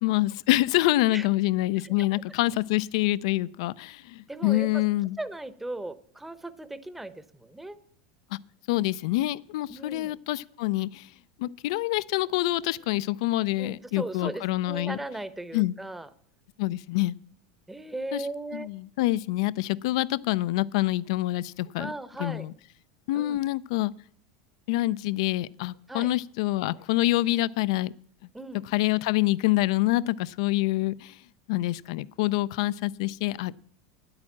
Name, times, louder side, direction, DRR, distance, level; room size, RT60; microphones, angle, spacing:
voice 1, 0.0-5.2 8.3-8.4 8.7-11.1 11.4-15.0 15.5-15.8 16.6-17.1 18.1-18.3 18.5-21.9 22.2-22.5 23.1-23.9 24.7-27.9 28.7-31.2 31.5-33.6, left 17 dB, 70° left, 19 dB, 0.4 m, -26 dB
voice 2, 4.3-4.8 5.2-7.8 9.7-10.1 13.6-16.1 17.7-18.7 21.8-22.5 23.1-23.4 25.9-26.1 28.3-28.6, right 2 dB, 5° right, 14 dB, 0.7 m, -37 dB
9.8 x 8.8 x 7.1 m, 0.63 s
supercardioid pair, 140°, 3 cm